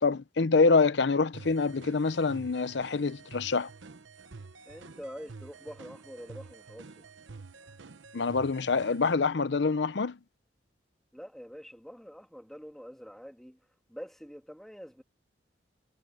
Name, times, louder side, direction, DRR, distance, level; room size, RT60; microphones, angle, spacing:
voice 1, 0.0-3.7 8.1-10.2, left 4 dB, 65° left, 0.7 m, -26 dB
sound 1, 1.3-9.2, right 4 dB, 85° right, 1.0 m, -49 dB
voice 2, 4.7-7.0 11.1-13.6 13.9-15.0, equal, ahead, 2.5 m, -45 dB
head